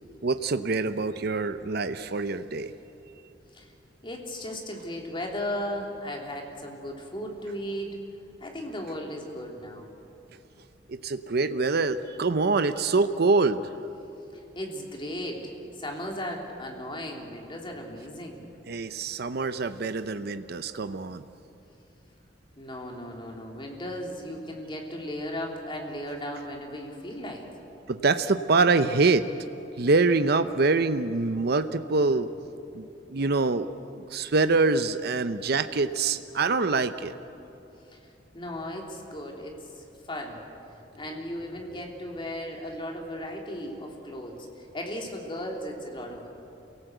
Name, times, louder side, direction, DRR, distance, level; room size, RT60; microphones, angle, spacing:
voice 1, 0.2-2.7 10.9-13.6 18.7-21.3 27.9-29.3 29.8-32.3 32.7-33.7 33.9-37.1, right 3 dB, 60° right, 10 dB, 0.7 m, -25 dB
voice 2, 4.0-8.0 8.4-9.9 14.5-18.5 22.6-27.4 34.1-34.2 35.4-35.5 37.9-40.4 40.9-46.3, equal, 30° left, 1 dB, 3.2 m, -36 dB
28.0 x 18.0 x 8.0 m, 2.8 s
head